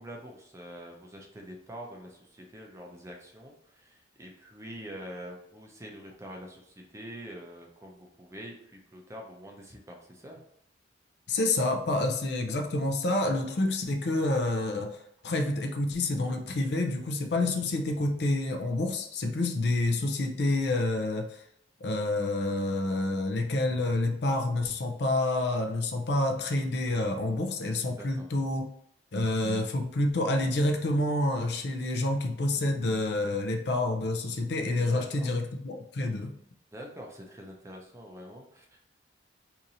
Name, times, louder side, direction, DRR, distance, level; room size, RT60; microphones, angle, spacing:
voice 1, 0.0-10.4 27.9-28.3 34.8-35.3 36.7-38.9, equal, 15° right, 0 dB, 0.5 m, -45 dB
voice 2, 11.3-21.4 21.8-28.7 29.1-36.3, left 2 dB, 60° left, 5 dB, 0.5 m, -28 dB
2.8 x 2.5 x 3.9 m, 0.72 s
head